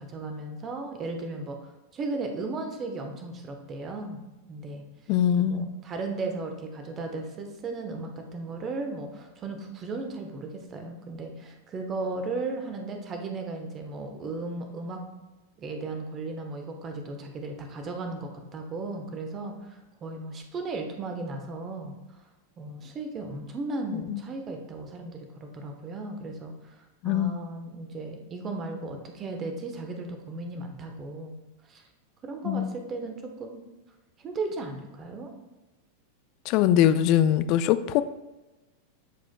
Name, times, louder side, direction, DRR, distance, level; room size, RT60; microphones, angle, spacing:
voice 1, 0.0-4.2 4.5-4.8 5.4-15.0 15.6-21.9 22.6-31.4 31.7-31.8 32.2-33.6 34.2-35.3, right 3 dB, 25° right, 4 dB, 1.0 m, -36 dB
voice 2, 5.1-5.7 23.9-24.2 27.0-27.4 32.4-32.7 36.5-38.0, left 10 dB, 40° left, 13 dB, 0.3 m, -22 dB
11.0 x 4.9 x 2.2 m, 1.1 s
figure-of-eight pair, 90°, 0 cm